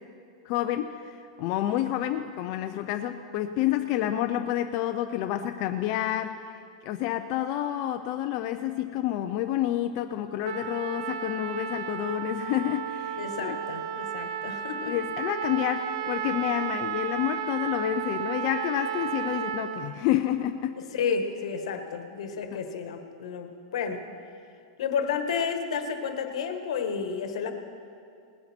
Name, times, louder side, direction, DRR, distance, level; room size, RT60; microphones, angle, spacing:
voice 1, 0.4-6.6 6.9-13.6 14.9-20.8 22.5-22.6, left 12 dB, 35° left, 6 dB, 0.4 m, -29 dB
Trumpet, 10.4-19.9, right 9 dB, 60° right, 0.7 m, -33 dB
voice 2, 13.2-15.0 20.8-24.0 24.8-27.5, left 6 dB, 75° left, 7 dB, 1.4 m, -31 dB
19.5 x 10.0 x 4.4 m, 2.4 s
supercardioid pair, 165°, 3 cm